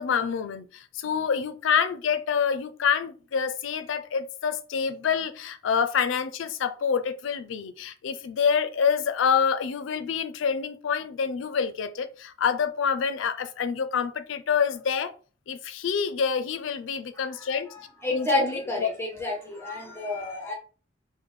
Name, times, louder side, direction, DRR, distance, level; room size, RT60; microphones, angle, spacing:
voice 1, 0.0-15.1 15.5-17.7 18.1-18.9, left 6 dB, 75° left, 0.4 m, -27 dB
voice 2, 17.1-20.5, left 1 dB, 15° left, 0.7 m, -31 dB
3.6 x 2.1 x 3.1 m
head